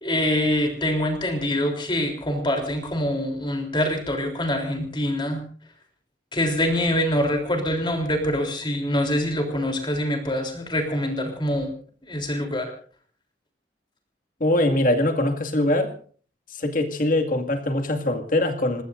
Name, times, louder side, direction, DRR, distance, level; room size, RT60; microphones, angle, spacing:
voice 1, 0.0-5.4 6.3-11.7 12.1-12.7, left 1 dB, 30° left, 3 dB, 3.6 m, -25 dB
voice 2, 14.4-16.0 16.5-18.8, left 1 dB, 50° left, 4 dB, 2.2 m, -22 dB
26.5 x 20.5 x 2.6 m, 0.43 s
head